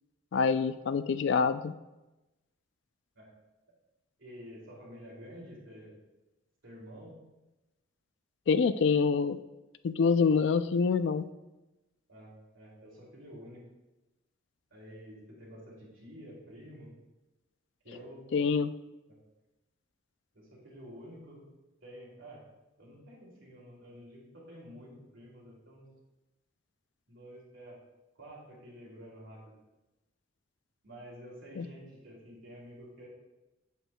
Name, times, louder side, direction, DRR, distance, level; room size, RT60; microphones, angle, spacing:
voice 1, 0.3-1.7 8.5-9.4 9.8-11.3 18.3-18.7 31.6-31.7, left 5 dB, 65° left, 12 dB, 0.3 m, -26 dB
voice 2, 4.2-6.0 6.6-7.2 12.1-13.6 14.7-16.9 17.8-18.4 19.1-19.2 20.3-21.4 21.8-22.4 22.8-25.9 27.1-27.8 28.2-29.6 30.8-33.1, equal, 80° right, -4 dB, 2.6 m, -49 dB
8.0 x 7.9 x 2.2 m, 1.0 s
head